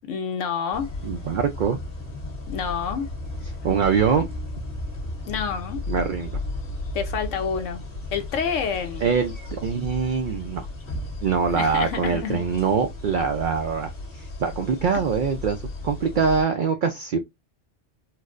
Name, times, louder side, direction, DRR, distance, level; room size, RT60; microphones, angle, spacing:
voice 1, 0.0-0.9 2.5-3.1 5.3-5.8 6.9-7.8 8.1-9.1 11.5-12.5, left 6 dB, 85° left, 1.0 m, -28 dB
sound 1, 0.7-16.4, left 2 dB, 50° left, 1.6 m, -35 dB
voice 2, 1.0-1.8 3.6-4.3 5.9-6.4 9.0-10.7 11.2-17.2, right 6 dB, 60° right, 0.5 m, -24 dB
4.4 x 2.0 x 2.4 m
omnidirectional pair, 1.2 m